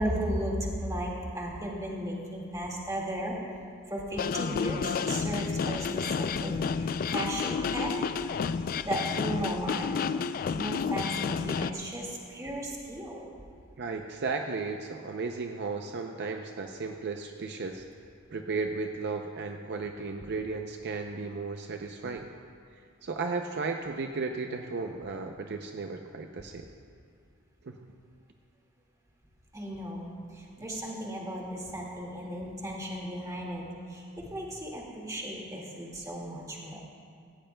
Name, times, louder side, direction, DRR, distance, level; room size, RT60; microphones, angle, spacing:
voice 1, 0.0-3.4 3.9-8.1 8.8-10.0 10.5-13.3 29.5-33.6 33.9-36.8, right 1 dB, 15° right, -2 dB, 2.0 m, -35 dB
sound 1, 4.2-11.7, left 6 dB, 45° left, 0.3 m, -30 dB
voice 2, 13.8-17.8 18.3-22.3 23.0-26.7 27.6-27.8 30.6-30.7, right 4 dB, 55° right, 4 dB, 0.5 m, -35 dB
17.5 x 15.5 x 2.2 m, 2.3 s
head